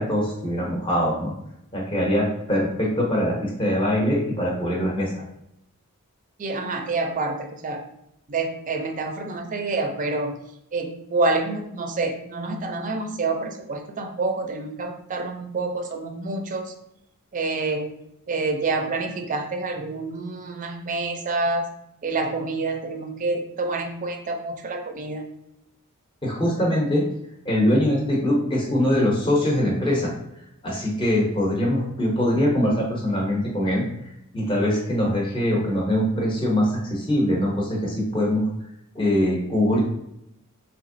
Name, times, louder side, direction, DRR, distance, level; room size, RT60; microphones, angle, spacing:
voice 1, 0.0-1.3 1.7-5.1 26.2-27.0 27.4-30.1 30.6-33.8 34.3-38.5 38.9-39.8, left 1 dB, 20° left, -2 dB, 0.6 m, -22 dB
voice 2, 6.4-7.8 8.3-10.3 10.7-16.7 17.3-17.9 18.3-21.7 22.0-25.2, right 3 dB, 35° right, 5 dB, 0.4 m, -27 dB
3.4 x 2.9 x 2.5 m, 0.80 s
head